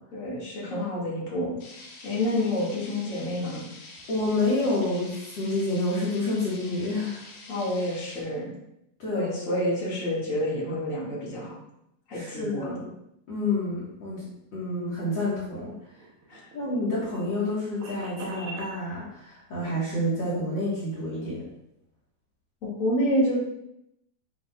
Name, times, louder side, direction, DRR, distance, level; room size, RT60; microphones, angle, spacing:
voice 1, 0.1-1.5 2.0-3.7 7.5-8.5 9.1-11.5 12.1-12.8 16.3-16.4 22.6-23.4, left 1 dB, 45° left, -7 dB, 1.0 m, -28 dB
sound 1, 1.6-8.2, left 2 dB, 65° left, 1.9 m, -46 dB
voice 2, 4.1-7.2 9.0-9.3 12.1-12.9 13.3-15.7 16.5-21.4, left 2 dB, 90° left, -8 dB, 1.0 m, -28 dB
sound 2, 15.7-18.7, right 2 dB, 80° right, 1.6 m, -43 dB
7.4 x 5.7 x 2.3 m, 0.82 s
omnidirectional pair, 4.5 m